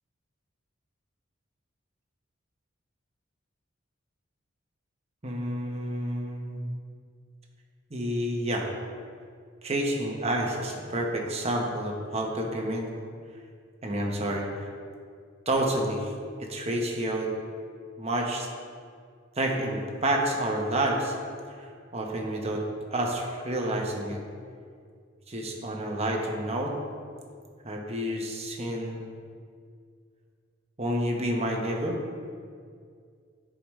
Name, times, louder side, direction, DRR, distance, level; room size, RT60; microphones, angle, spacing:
voice 1, 5.2-6.7 7.9-8.7 9.6-12.9 13.8-14.7 15.5-16.1 16.4-17.3 18.0-18.5 19.4-21.2 21.6-22.6 22.9-24.2 25.3-26.7 27.6-29.1 30.8-32.0, right 1 dB, 35° right, 0 dB, 1.0 m, -29 dB
10.5 x 5.0 x 3.1 m, 2.1 s
head